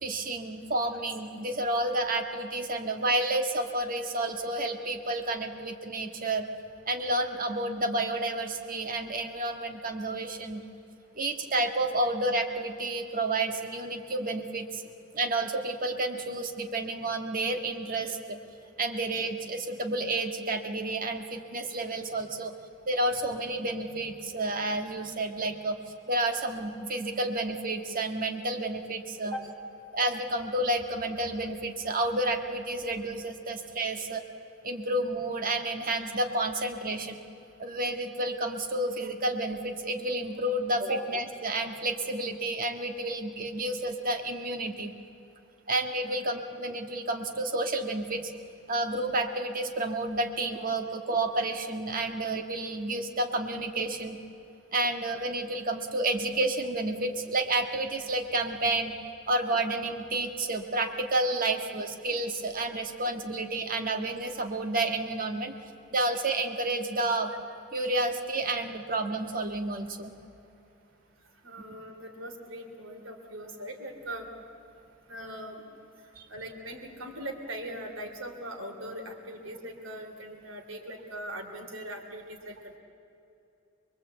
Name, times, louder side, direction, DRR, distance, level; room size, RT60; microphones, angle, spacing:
voice 1, 0.0-6.5 6.9-10.6 11.2-14.8 15.1-18.4 18.8-22.5 22.9-25.8 26.1-29.3 29.9-34.2 34.6-37.2 37.6-44.9 45.7-48.3 48.7-54.2 54.7-58.9 59.3-65.5 65.9-67.3 67.7-70.1 76.2-76.3, right 2 dB, 45° right, 5 dB, 1.7 m, -30 dB
voice 2, 71.4-74.3 75.1-75.6 76.3-82.8, right 1 dB, 90° right, 4 dB, 3.1 m, -40 dB
24.5 x 22.0 x 8.1 m, 2.9 s
head